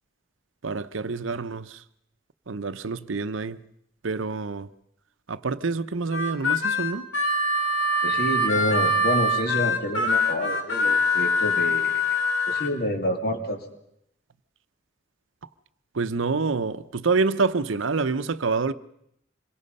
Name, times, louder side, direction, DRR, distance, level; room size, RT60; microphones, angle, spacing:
voice 1, 0.6-1.8 2.5-3.6 4.0-4.7 5.3-7.1 15.9-18.7, right 4 dB, 90° right, 0.8 m, -27 dB
Harmonica, 6.1-12.7, left 2 dB, 85° left, 2.4 m, -24 dB
voice 2, 8.0-12.0 12.5-13.6, left 1 dB, 50° left, 2.7 m, -28 dB
26.0 x 22.5 x 5.4 m
head